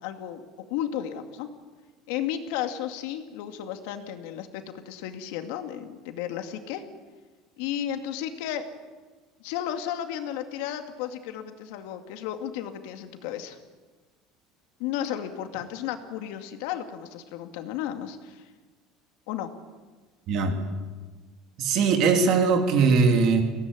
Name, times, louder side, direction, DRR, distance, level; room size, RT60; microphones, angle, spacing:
voice 1, 0.0-1.5 2.1-6.8 7.6-8.6 9.4-13.6 14.8-18.5 19.3-19.5, left 10 dB, 70° left, 7 dB, 2.3 m, -33 dB
voice 2, 21.6-23.4, right 5 dB, 40° right, 5 dB, 3.0 m, -20 dB
23.0 x 18.0 x 9.8 m, 1.3 s
cardioid pair, 180°, 0 cm